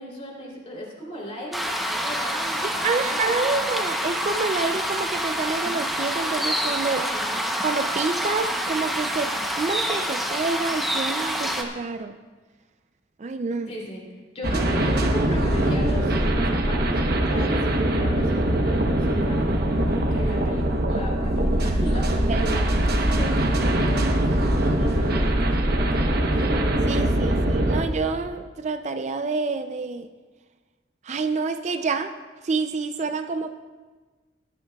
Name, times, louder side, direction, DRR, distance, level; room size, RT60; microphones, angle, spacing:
voice 1, 0.0-3.2 7.0-7.4 13.7-14.0 14.3-17.0 17.3-19.4 19.9-22.6 23.0-26.4, equal, 35° left, -3 dB, 3.1 m, -36 dB
sound 1, 1.5-11.6, equal, ahead, 0.8 m, -27 dB
voice 2, 2.6-7.0 7.6-12.2 13.2-13.7 17.3-17.5 22.3-22.5 23.0-23.1 26.9-30.1 31.0-32.1 32.4-33.5, right 4 dB, 40° right, 8 dB, 0.4 m, -28 dB
sound 2, 14.4-27.8, right 1 dB, 55° right, 0.9 m, -22 dB
18.0 x 11.0 x 2.3 m, 1.3 s
head